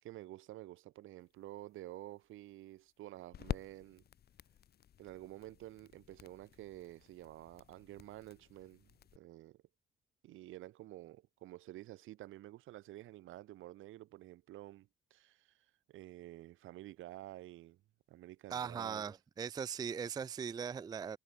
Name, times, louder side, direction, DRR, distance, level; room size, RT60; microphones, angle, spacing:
voice 1, 0.0-4.0 5.0-9.6 10.2-17.8 18.1-19.0, right 15 dB, 85° right, 1.7 m, -51 dB
sound 1, 1.2-9.2, left 10 dB, 50° left, 0.8 m, -49 dB
voice 2, 18.5-21.2, right 7 dB, 20° right, 0.3 m, -39 dB
cardioid pair, 90°, 20 cm